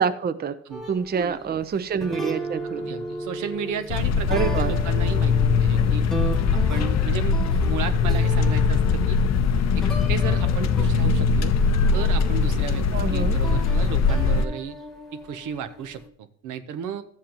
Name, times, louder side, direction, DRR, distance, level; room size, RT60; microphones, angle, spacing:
voice 1, 0.0-0.6 0.9-2.9 4.3-4.7 12.9-13.4, right 6 dB, 30° right, 12 dB, 0.6 m, -26 dB
sound 1, 0.7-16.1, right 1 dB, ahead, 1.2 m, -36 dB
voice 2, 2.9-4.3 4.6-6.0 6.5-7.4 7.6-9.2 9.8-11.5 11.9-14.8 15.1-16.0 16.4-17.0, right 7 dB, 80° right, 9 dB, 0.8 m, -33 dB
sound 2, 3.9-14.4, left 5 dB, 60° left, 0.6 m, -21 dB
13.0 x 7.4 x 2.9 m, 0.64 s
cardioid pair, 90°, 30 cm